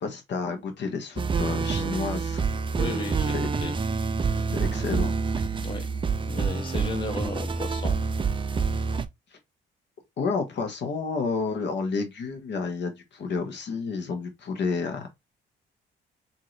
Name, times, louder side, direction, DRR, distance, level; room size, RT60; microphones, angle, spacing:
voice 1, 0.0-2.4 3.3-3.5 4.5-5.1 9.3-9.4 10.2-15.1, left 4 dB, 60° left, 1.2 m, -30 dB
sound 1, 1.2-9.1, right 5 dB, 25° right, 0.4 m, -27 dB
voice 2, 2.8-3.3 3.6-3.8 5.6-5.9 6.3-8.0, left 3 dB, 25° left, 0.6 m, -34 dB
3.7 x 2.8 x 3.1 m
cardioid pair, 90°, 20 cm